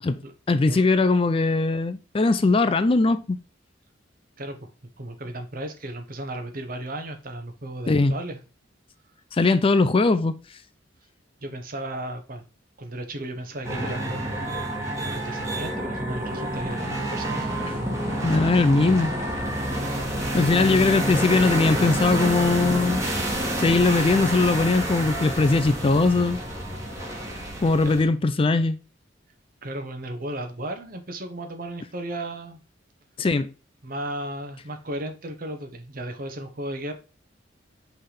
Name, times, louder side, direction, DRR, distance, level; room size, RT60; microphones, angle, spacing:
voice 1, 0.5-3.4 7.9-8.2 9.3-10.4 18.2-19.1 20.3-23.1 23.6-26.4 27.6-28.8 33.2-33.5, left 3 dB, 30° left, 0.4 m, -20 dB
voice 2, 4.4-8.4 11.4-12.4 12.8-14.5 15.0-17.5 27.8-27.9 29.6-32.6 33.8-36.9, right 1 dB, 50° right, 1.1 m, -35 dB
sound 1, 13.6-28.0, right 1 dB, 15° right, 1.8 m, -28 dB
5.5 x 3.4 x 5.7 m
head